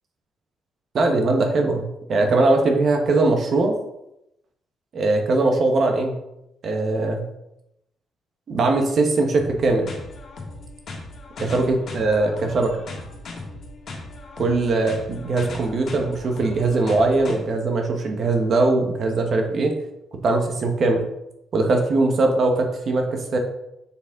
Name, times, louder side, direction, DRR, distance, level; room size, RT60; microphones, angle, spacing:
voice 1, 0.9-3.8 4.9-6.2 6.6-7.3 8.5-9.9 11.4-12.9 14.4-19.7 20.2-21.1 21.5-23.4, right 2 dB, 55° right, 3 dB, 1.2 m, -21 dB
sound 1, 9.4-17.4, left 2 dB, 60° left, 1.6 m, -37 dB
7.2 x 4.2 x 3.7 m, 0.84 s
cardioid pair, 90°, 0 cm